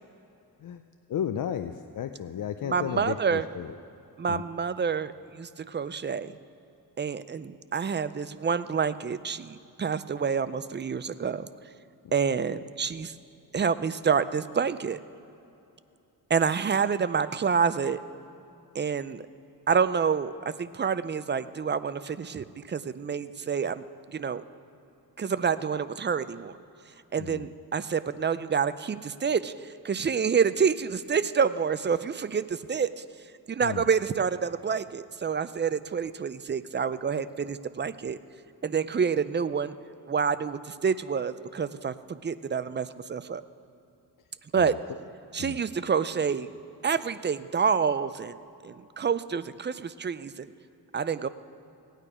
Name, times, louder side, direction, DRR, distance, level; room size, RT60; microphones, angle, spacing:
voice 1, 1.1-3.8 4.3-4.4 27.2-27.4 33.6-33.8 44.6-44.8 45.4-45.6, left 9 dB, 55° left, 8 dB, 0.5 m, -33 dB
voice 2, 2.6-3.5 4.2-6.3 7.0-11.5 12.1-13.1 13.5-15.0 16.3-18.0 18.7-19.2 19.7-24.4 25.2-26.5 27.1-33.0 33.5-38.2 38.6-39.7 40.1-43.4 44.5-44.8 45.3-46.5 46.8-48.3 48.6-50.5 50.9-51.3, right 6 dB, 30° right, 14 dB, 0.4 m, -28 dB
17.5 x 9.2 x 4.9 m, 2.8 s
cardioid pair, 90°, 39 cm